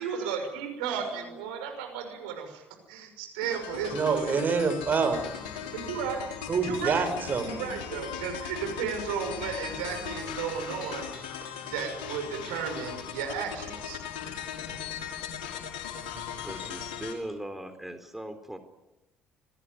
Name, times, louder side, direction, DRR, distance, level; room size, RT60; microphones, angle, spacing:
voice 1, 0.0-4.4 5.6-6.2 6.6-7.1 7.4-11.1 11.7-14.0, right 7 dB, 75° right, 5 dB, 6.1 m, -34 dB
voice 2, 0.8-1.6 16.4-18.6, right 1 dB, 5° right, 8 dB, 3.9 m, -40 dB
sound 1, 3.4-17.1, left 8 dB, 75° left, 6.0 m, -38 dB
voice 3, 3.9-5.2 6.5-7.7 16.6-16.7, right 5 dB, 40° right, 8 dB, 6.2 m, -27 dB
26.5 x 20.0 x 9.6 m, 0.97 s
hypercardioid pair, 55°, 5 cm